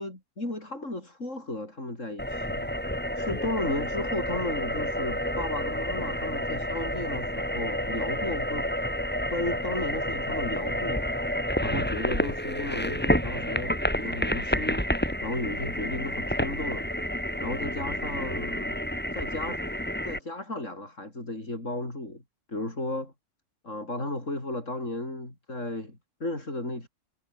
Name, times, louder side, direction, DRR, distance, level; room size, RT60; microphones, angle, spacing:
voice 1, 0.0-2.7 3.2-8.7 9.3-11.1 11.6-14.9 15.2-16.9 17.4-18.8 19.1-19.6 20.1-22.2 22.5-23.1 23.6-26.9, left 2 dB, 75° left, 7.2 m, -34 dB
sound 1, 2.2-20.2, equal, 10° left, 3.7 m, -30 dB
omnidirectional pair, 1.3 m